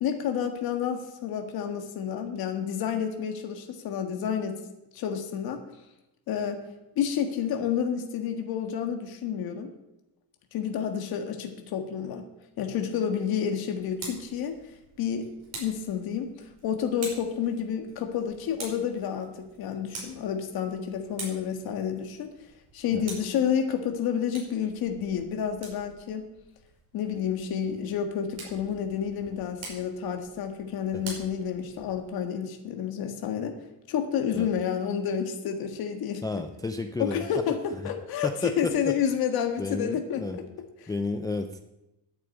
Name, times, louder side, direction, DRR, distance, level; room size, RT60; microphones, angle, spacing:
voice 1, 0.0-4.6 4.9-5.6 6.3-6.6 6.9-9.7 10.5-12.2 12.6-14.5 15.0-15.3 15.5-19.3 19.6-22.3 22.7-26.2 26.9-33.6 33.9-36.2 37.0-40.3 40.8-40.9, left 8 dB, 55° left, 5 dB, 1.7 m, -30 dB
Tick, 13.7-32.1, right 3 dB, 35° right, 5.4 m, -46 dB
voice 2, 36.2-37.2 38.2-38.9 39.6-40.4 40.9-41.6, left 3 dB, 10° left, 6 dB, 0.4 m, -31 dB
10.5 x 8.7 x 8.1 m, 0.94 s
cardioid pair, 160°, 42 cm